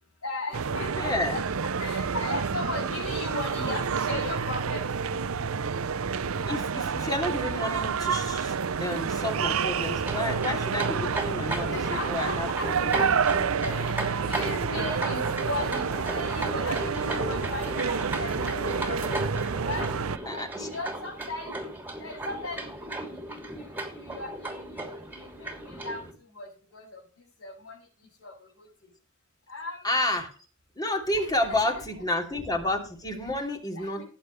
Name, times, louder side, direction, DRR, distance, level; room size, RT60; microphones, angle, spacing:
voice 1, 0.2-1.4 1.8-5.2 11.4-13.1 13.6-19.2 19.6-19.9 20.3-21.6 22.0-28.7 29.5-29.9 31.1-31.8 33.2-33.5 33.8-34.0, left 2 dB, 75° left, -5 dB, 6.9 m, -37 dB
sound 1, 0.5-20.2, right 6 dB, 75° right, 0.6 m, -29 dB
voice 2, 0.9-1.4 6.5-12.5 12.8-13.1 20.3-20.7 29.8-30.3 30.8-34.0, left 1 dB, 20° left, 3 dB, 3.0 m, -30 dB
sound 2, 9.9-26.1, right 1 dB, 10° right, 2.9 m, -36 dB
18.0 x 8.6 x 3.3 m, 0.37 s
head